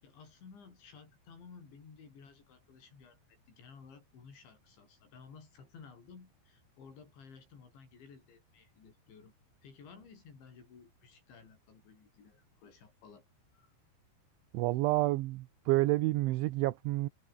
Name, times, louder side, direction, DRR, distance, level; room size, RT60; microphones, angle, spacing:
voice 1, 0.0-3.2 3.5-9.3 9.6-13.3 13.5-13.7, left 5 dB, 75° left, 8.7 m, -55 dB
voice 2, 14.5-17.1, right 18 dB, 85° right, 3.3 m, -29 dB
omnidirectional pair, 5.4 m